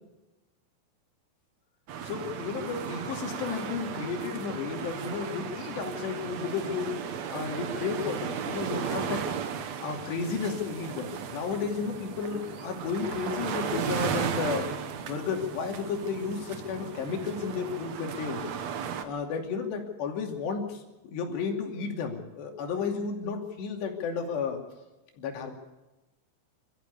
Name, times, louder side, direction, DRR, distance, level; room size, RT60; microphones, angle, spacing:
sound 1, 1.9-19.0, right 7 dB, 65° right, 1.7 m, -35 dB
voice 1, 2.0-6.9 7.3-9.3 9.8-14.7 15.0-18.5 19.0-24.6 25.2-25.5, left 5 dB, 85° left, 2 dB, 4.9 m, -33 dB
26.5 x 14.0 x 8.4 m, 1.0 s
omnidirectional pair, 4.8 m